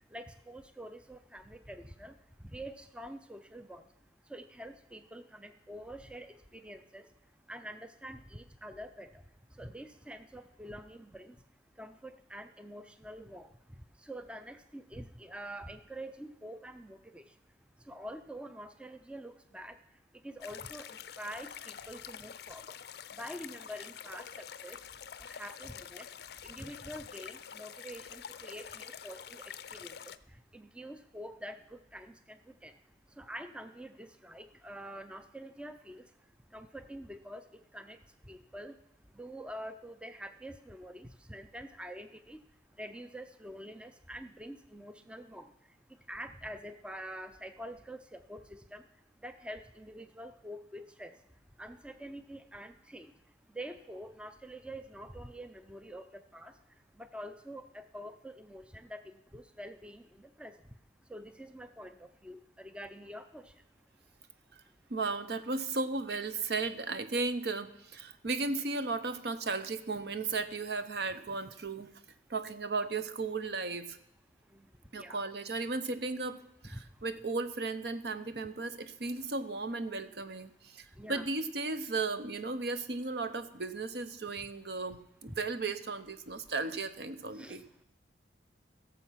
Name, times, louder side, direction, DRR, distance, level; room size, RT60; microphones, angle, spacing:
voice 1, 0.1-3.8 4.3-7.1 7.5-9.2 9.5-11.3 11.8-13.5 14.0-17.3 17.9-19.8 20.2-22.8 23.1-24.8 25.2-26.1 26.4-32.7 33.2-36.1 36.5-38.0 38.2-38.7 39.1-42.4 42.8-45.5 46.1-48.8 49.2-51.1 51.6-53.1 53.5-56.6 57.0-60.6 61.1-63.5 74.5-74.7 75.0-75.2 76.6-76.8 81.0-81.3 85.3-85.4 87.3-87.6, equal, 5° right, 9 dB, 0.4 m, -46 dB
sound 1, 20.4-30.2, left 8 dB, 55° left, 0.5 m, -47 dB
voice 2, 64.9-71.9 72.3-74.0 74.9-76.4 76.6-87.6, right 3 dB, 60° right, 11 dB, 0.8 m, -35 dB
16.5 x 7.2 x 5.7 m, 0.87 s
head